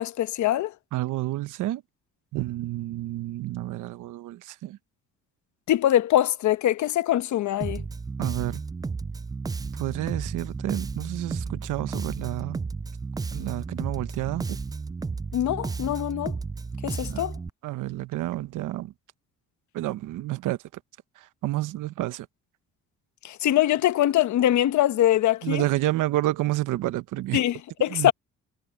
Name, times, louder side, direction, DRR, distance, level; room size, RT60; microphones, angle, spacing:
voice 1, 0.0-0.7 5.7-7.8 15.3-16.4 16.8-17.3 23.2-25.6 27.3-28.1, left 13 dB, 75° left, 1.0 m, -23 dB
voice 2, 0.9-1.8 2.3-4.8 8.2-8.6 9.7-12.6 13.3-14.6 17.0-17.3 17.6-18.9 19.7-20.6 21.2-22.3 25.4-27.4 27.9-28.1, right 16 dB, 85° right, 1.0 m, -29 dB
Bass guitar, 7.6-17.5, right 4 dB, 15° right, 0.3 m, -33 dB
cardioid pair, 90°, 30 cm